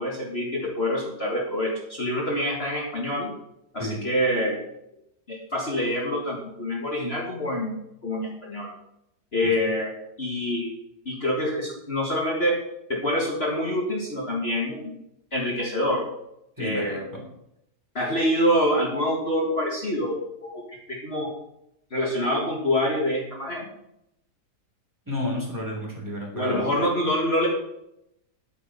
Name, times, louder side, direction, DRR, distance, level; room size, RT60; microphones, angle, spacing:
voice 1, 0.0-3.3 3.7-4.6 5.3-7.8 8.0-8.7 9.3-9.9 10.2-10.7 11.1-12.6 12.9-14.9 15.3-16.0 16.6-17.0 18.0-21.3 21.9-23.7 26.3-27.5, equal, 40° left, -2 dB, 2.0 m, -26 dB
voice 2, 16.6-17.2 25.1-26.8, left 1 dB, 10° right, -2 dB, 3.3 m, -31 dB
10.5 x 8.6 x 5.5 m, 0.80 s
omnidirectional pair, 1.8 m